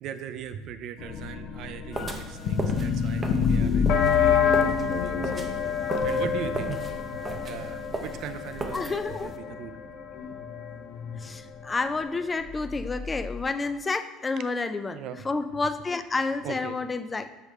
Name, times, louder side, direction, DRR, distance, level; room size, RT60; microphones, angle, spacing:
voice 1, 0.0-5.3 6.0-6.8 7.1-9.7 14.9-15.2 16.4-16.8, right 8 dB, 60° right, 11 dB, 0.5 m, -39 dB
sound 1, 1.0-11.3 11.6-11.7 11.9-12.0 12.4-13.4, left 6 dB, 55° left, 0.6 m, -28 dB
sound 2, 1.9-9.4, right 3 dB, 20° right, 0.6 m, -37 dB
voice 2, 8.7-9.3 11.2-17.3, left 3 dB, 20° left, 11 dB, 0.4 m, -30 dB
6.2 x 5.0 x 3.2 m, 1.2 s
supercardioid pair, 115°, 0 cm